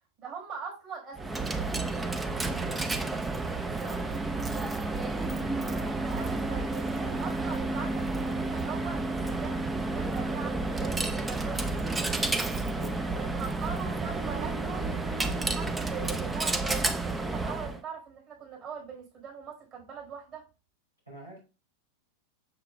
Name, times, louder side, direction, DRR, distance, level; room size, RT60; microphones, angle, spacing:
voice 1, 0.2-4.7 5.6-12.1 13.2-20.4, right 6 dB, 35° right, -1 dB, 4.3 m, -42 dB
Coin (dropping), 1.2-17.8, right 2 dB, 10° right, 0.6 m, -31 dB
voice 2, 12.7-13.4 21.0-21.4, right 1 dB, 85° right, -4 dB, 3.2 m, -45 dB
7.5 x 6.7 x 2.2 m, 0.30 s
figure-of-eight pair, 90°, 0 cm